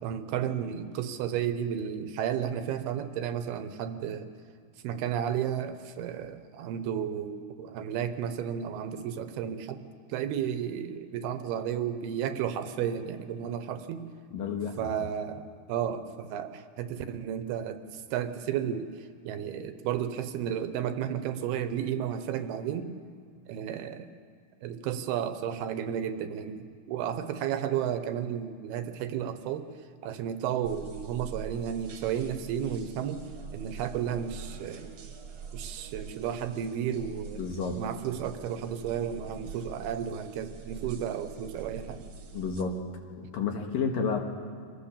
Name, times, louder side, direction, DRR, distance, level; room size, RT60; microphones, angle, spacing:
voice 1, 0.0-4.3 4.8-9.8 10.1-14.0 14.8-18.9 19.3-22.9 23.5-24.1 24.6-29.7 30.0-33.2 33.5-34.9 35.5-37.4 37.8-42.0, right 9 dB, 80° right, 9 dB, 2.9 m, -33 dB
voice 2, 14.3-15.1 37.4-37.8 42.3-42.8 43.2-44.2, left 5 dB, 65° left, 3 dB, 3.1 m, -31 dB
sound 1, 30.6-42.6, right 6 dB, 50° right, 2.3 m, -44 dB
25.5 x 17.5 x 7.3 m, 2.2 s
omnidirectional pair, 4.6 m